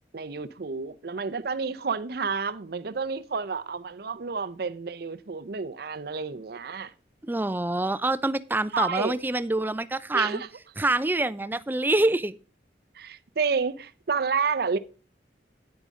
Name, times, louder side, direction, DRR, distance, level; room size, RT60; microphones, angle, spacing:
voice 1, 0.1-6.9 8.7-9.1 10.1-10.5 12.9-14.8, right 5 dB, 60° right, 0.6 m, -30 dB
voice 2, 7.2-10.4 10.8-12.3, right 2 dB, 10° right, 0.4 m, -26 dB
9.6 x 9.2 x 3.6 m
head